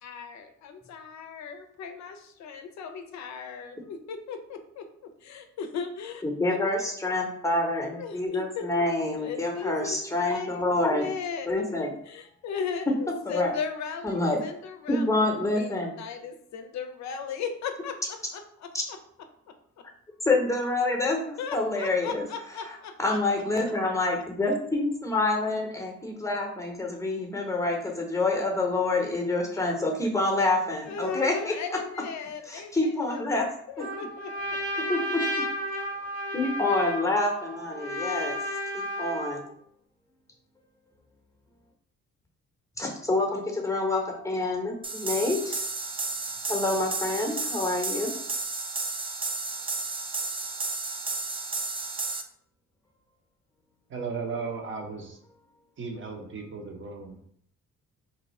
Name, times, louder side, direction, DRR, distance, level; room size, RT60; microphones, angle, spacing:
voice 1, 0.0-4.9 5.2-6.2 6.5-6.6 8.0-8.7 9.1-11.5 12.1-15.1 15.5-19.0 21.4-22.9 30.8-33.2 33.7-34.8, left 6 dB, 65° left, 7 dB, 0.5 m, -37 dB
voice 2, 6.2-11.1 11.5-11.9 13.3-13.5 14.0-14.4 14.9-15.9 20.2-22.3 22.7-31.6 32.5-33.5 34.9-35.2 36.3-38.4 38.7-39.4 42.8-45.6 46.5-48.1, left 2 dB, 10° left, 1 dB, 0.8 m, -27 dB
Trumpet, 33.8-39.5, equal, 75° right, 1.2 m, -33 dB
sound 1, 44.8-52.2, right 3 dB, 20° right, 0.3 m, -32 dB
voice 3, 53.9-55.2 55.8-57.3, right 4 dB, 40° right, 2 dB, 0.8 m, -35 dB
2.7 x 2.3 x 4.1 m, 0.66 s
cardioid pair, 90°, 30 cm